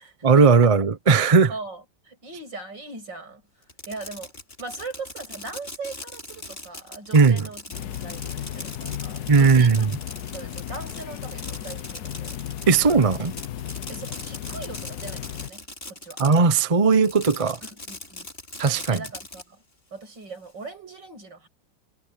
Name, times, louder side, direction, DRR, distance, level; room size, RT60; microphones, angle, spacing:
voice 1, 0.2-1.5 7.1-7.4 9.3-9.9 12.7-13.3 16.2-17.6 18.6-19.0, right 5 dB, 30° right, 0.7 m, -17 dB
voice 2, 1.3-3.4 3.9-4.3 4.6-12.4 13.9-16.2 17.7-18.3 18.9-19.6 19.9-21.5, right 3 dB, 75° right, 8.9 m, -40 dB
Fireworks, 3.6-16.6 16.9-19.4, left 2 dB, 30° left, 4.6 m, -40 dB
sound 1, 7.7-15.5, left 11 dB, 65° left, 1.3 m, -35 dB
omnidirectional pair, 2.0 m